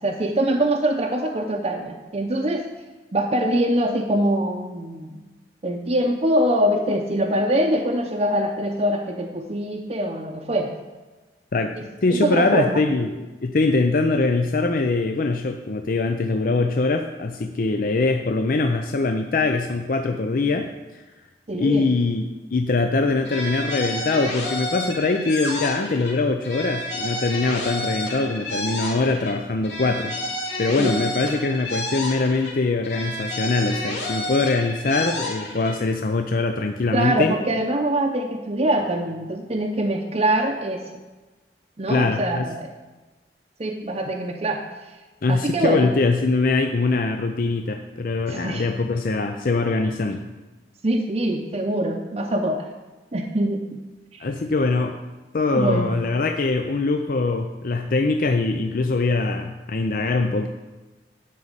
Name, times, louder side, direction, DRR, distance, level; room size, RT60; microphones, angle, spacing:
voice 1, 0.0-2.7 3.1-5.2 5.6-10.7 11.8-11.9 12.2-12.8 21.5-21.9 30.8-30.9 36.9-40.8 41.8-42.7 43.6-44.6 45.3-45.9 48.3-48.6 50.8-52.7 53.1-53.6 54.1-54.2 55.5-55.9, right 1 dB, 35° right, 0 dB, 0.7 m, -23 dB
voice 2, 12.0-20.7 20.9-21.0 21.6-30.2 30.6-37.4 41.9-42.5 45.2-50.2 54.2-55.0 55.3-60.5, left 3 dB, 50° left, 5 dB, 0.5 m, -22 dB
sound 1, 23.2-26.2 26.4-29.4 29.6-32.6 32.8-35.8, left 1 dB, 80° left, 2.3 m, -30 dB
12.0 x 4.1 x 8.1 m, 1.2 s
head